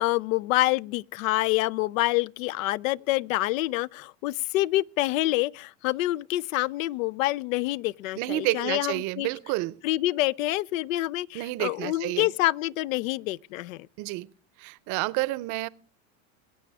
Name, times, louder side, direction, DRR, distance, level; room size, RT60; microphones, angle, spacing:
voice 1, 0.0-9.3 9.8-13.9, left 17 dB, 85° left, 0.5 m, -27 dB
voice 2, 8.2-9.8 11.3-12.3 14.0-14.3 14.6-15.7, right 20 dB, 50° right, 0.6 m, -30 dB
22.0 x 9.4 x 3.4 m
supercardioid pair, 125°, 39 cm